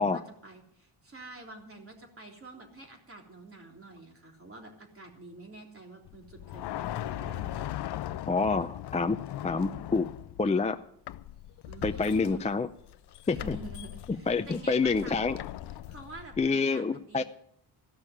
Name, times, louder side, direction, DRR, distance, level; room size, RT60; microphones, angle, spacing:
voice 1, 0.0-7.7 11.7-12.5 13.3-15.2 15.9-17.2, right 2 dB, 30° right, 1 dB, 3.5 m, -48 dB
sound 1, 6.1-10.6 11.1-16.5, left 13 dB, 70° left, 0.6 m, -39 dB
voice 2, 8.3-10.8 11.8-12.7 13.3-13.6 14.1-15.4 16.4-17.2, left 4 dB, 15° left, 8 dB, 0.5 m, -28 dB
15.0 x 6.4 x 9.8 m, 0.72 s
cardioid pair, 90°, 41 cm